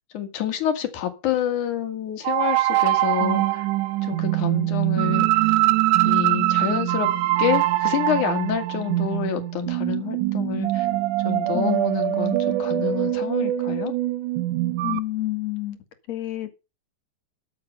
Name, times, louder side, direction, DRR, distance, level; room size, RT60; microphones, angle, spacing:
voice 1, 0.1-3.7 4.0-5.3 6.0-7.1 7.4-10.9 11.2-13.9, left 10 dB, 85° left, 3.3 m, -28 dB
sound 1, 2.2-15.0, right 16 dB, 85° right, 2.2 m, -23 dB
voice 2, 11.5-12.0 14.8-15.8 16.1-16.5, left 15 dB, 65° left, 2.9 m, -28 dB
13.0 x 7.6 x 5.4 m
omnidirectional pair, 3.4 m